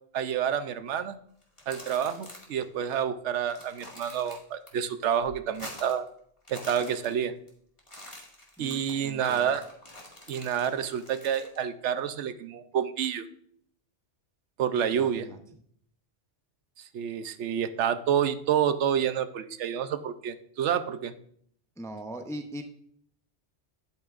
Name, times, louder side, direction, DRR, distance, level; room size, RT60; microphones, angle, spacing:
voice 1, 0.1-1.2 1.7-6.1 6.5-7.3 8.6-9.6 10.3-13.2 14.6-15.3 16.8-21.1, right 8 dB, 85° right, 11 dB, 1.0 m, -28 dB
sound 1, 1.4-2.6 2.9-3.0 3.3-4.7 5.0-6.1 6.4-7.5 7.8-11.6, left 1 dB, 25° left, 1.9 m, -46 dB
voice 2, 8.6-9.5 14.9-15.4 21.8-22.6, equal, 5° left, 5 dB, 0.4 m, -40 dB
10.5 x 8.5 x 2.5 m, 0.64 s
omnidirectional pair, 1.2 m